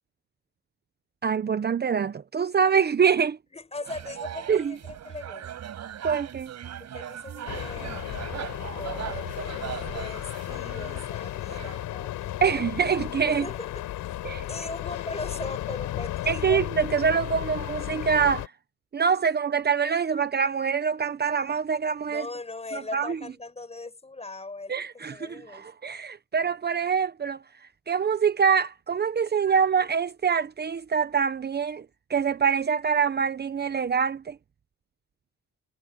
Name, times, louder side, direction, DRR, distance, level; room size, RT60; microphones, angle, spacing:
voice 1, 1.2-3.4 4.5-4.7 6.0-6.5 12.4-13.5 14.2-14.5 16.3-18.5 18.9-22.3 22.7-23.2 24.7-27.4 27.9-31.8 32.1-34.4, right 6 dB, 35° right, 0.9 m, -25 dB
voice 2, 3.5-5.5 6.8-8.0 8.8-12.6 13.2-14.2 14.5-16.7 22.1-25.7, left 3 dB, 20° left, 6.5 m, -39 dB
sound 1, 3.8-11.9, right 9 dB, 65° right, 4.8 m, -39 dB
sound 2, 7.5-18.5, left 14 dB, 90° left, 4.6 m, -34 dB
cardioid pair, 90°, 30 cm